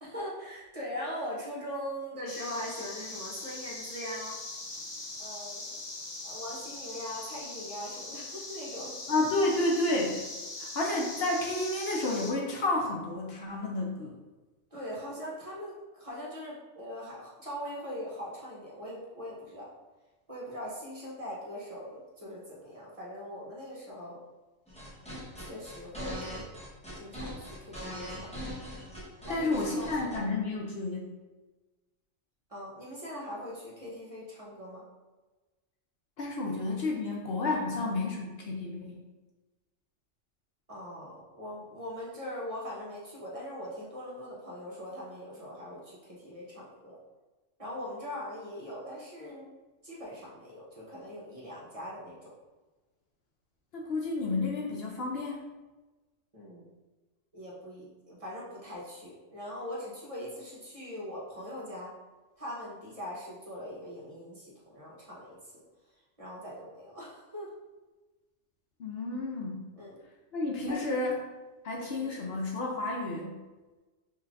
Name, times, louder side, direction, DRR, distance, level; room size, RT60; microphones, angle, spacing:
voice 1, 0.0-4.4 5.2-5.6 6.2-9.0 14.7-19.7 20.3-24.2 25.4-26.5 27.0-28.4 29.2-30.3 31.0-31.1 32.5-34.9 36.4-36.6 37.1-37.8 40.7-47.0 47.6-49.5 49.8-52.3 56.3-56.6 57.3-61.9 62.4-65.6 66.2-67.5 69.7-70.0 70.7-71.1 71.7-72.2, equal, 30° right, -6 dB, 1.0 m, -41 dB
sound 1, 2.3-12.3, left 2 dB, 40° left, 0.4 m, -41 dB
voice 2, 9.1-10.3 10.6-14.2 29.3-31.1 36.2-39.0 53.7-55.4 68.8-69.6 70.3-71.1 71.6-73.4, left 2 dB, 60° left, -1 dB, 0.8 m, -31 dB
sound 2, 24.7-30.2, equal, 5° left, 0.9 m, -41 dB
5.5 x 3.2 x 2.5 m, 1.2 s
omnidirectional pair, 1.3 m